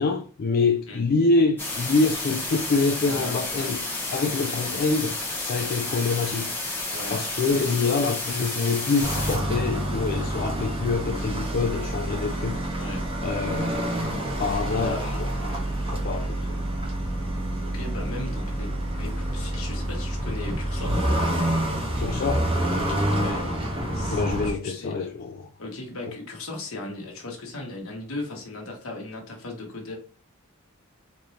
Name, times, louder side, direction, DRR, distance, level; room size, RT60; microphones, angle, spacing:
voice 1, 0.0-3.8 4.1-6.5 7.1-12.9 13.2-13.8 14.4-16.6 22.0-22.5 24.1-25.5, left 3 dB, 45° left, 0.4 m, -26 dB
sound 1, 1.6-9.4, left 2 dB, 10° left, 1.2 m, -31 dB
voice 2, 3.0-3.7 4.6-4.8 6.9-7.2 12.8-13.0 14.7-15.2 17.6-18.7 19.0-21.1 23.2-23.5 23.9-25.1 25.6-30.0, left 2 dB, 70° left, 1.3 m, -37 dB
sound 2, 9.0-24.5, right 1 dB, 25° right, 1.4 m, -27 dB
4.3 x 3.2 x 2.7 m
head